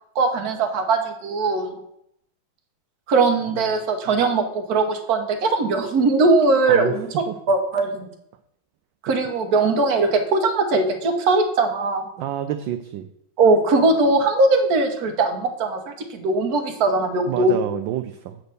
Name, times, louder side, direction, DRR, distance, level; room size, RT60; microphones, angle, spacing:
voice 1, 0.1-1.7 3.1-7.1 7.5-8.1 9.0-12.1 13.4-17.6, right 3 dB, 50° right, 5 dB, 1.4 m, -20 dB
voice 2, 12.2-13.1 17.3-18.4, right 11 dB, 75° right, 8 dB, 1.2 m, -28 dB
8.0 x 4.5 x 6.7 m, 0.75 s
omnidirectional pair, 2.3 m